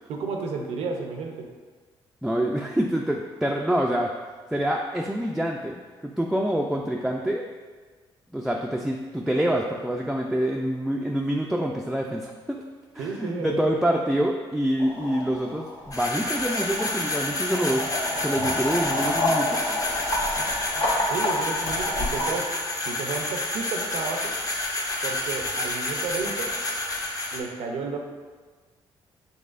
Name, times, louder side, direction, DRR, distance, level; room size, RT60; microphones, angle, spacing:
voice 1, 0.1-1.5 13.0-13.8 21.0-24.4 25.0-26.5 27.3-28.0, right 4 dB, 80° right, 3 dB, 0.6 m, -32 dB
voice 2, 2.2-4.1 4.5-5.8 6.0-7.4 8.3-12.6 12.9-17.9 18.2-19.8, right 1 dB, 5° right, 0 dB, 0.4 m, -26 dB
sound 1, 14.8-22.3, left 1 dB, 70° left, 1.0 m, -29 dB
sound 2, 15.9-27.4, left 2 dB, 30° left, 0.7 m, -29 dB
5.4 x 3.5 x 2.5 m, 1.4 s
cardioid pair, 70°, 11 cm